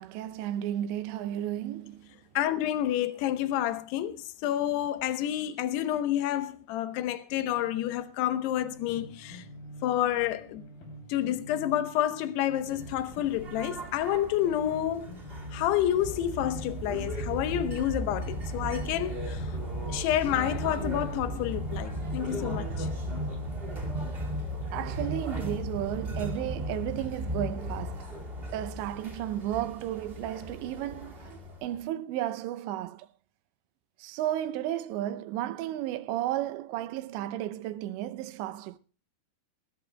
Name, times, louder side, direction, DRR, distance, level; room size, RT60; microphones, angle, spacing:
voice 1, 0.0-2.1 24.7-28.1 28.5-31.3 31.6-33.1 34.0-38.8, right 12 dB, 80° right, 2.9 m, -33 dB
voice 2, 2.4-9.5 9.8-10.6 11.1-15.1 15.5-19.5 19.9-22.9, left 12 dB, 75° left, 2.8 m, -29 dB
sound 1, 7.3-26.4, right 1 dB, 55° left, 4.7 m, -47 dB
sound 2, 12.6-31.8, equal, 40° right, 0.7 m, -36 dB
20.0 x 16.5 x 2.2 m
omnidirectional pair, 5.2 m